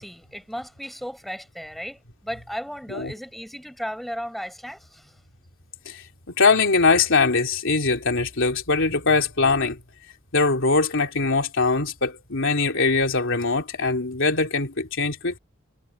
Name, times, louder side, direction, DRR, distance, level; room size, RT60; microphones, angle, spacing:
voice 1, 0.0-5.2, equal, ahead, 7.3 m, -35 dB
voice 2, 5.9-9.8 10.3-15.4, left 4 dB, 65° left, 3.5 m, -22 dB
head